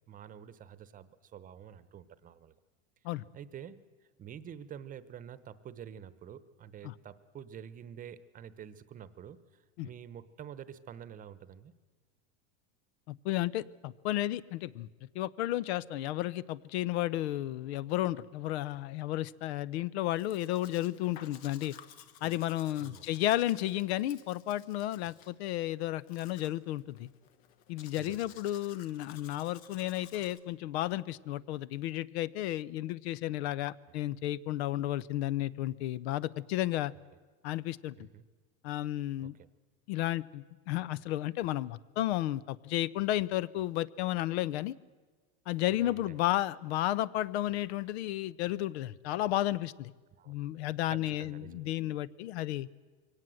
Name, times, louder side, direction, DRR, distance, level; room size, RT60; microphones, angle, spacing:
voice 1, 0.1-2.5 3.3-3.8 4.2-11.7 22.2-22.3 22.8-23.0 28.0-28.4 33.9-34.0 38.0-38.2 39.2-39.5 45.8-46.2 50.2-50.3 50.9-51.7, right 9 dB, 25° right, 15 dB, 0.9 m, -48 dB
voice 2, 13.1-14.9 15.1-21.7 22.2-27.1 27.7-36.9 37.4-38.1 38.6-39.3 39.9-44.7 45.5-49.9 50.3-52.7, left 14 dB, 80° left, 21 dB, 0.7 m, -33 dB
Domestic sounds home sounds, 20.2-30.4, left 9 dB, 65° left, 1.5 m, -56 dB
23.0 x 17.5 x 7.7 m, 1.4 s
supercardioid pair, 145°, 32 cm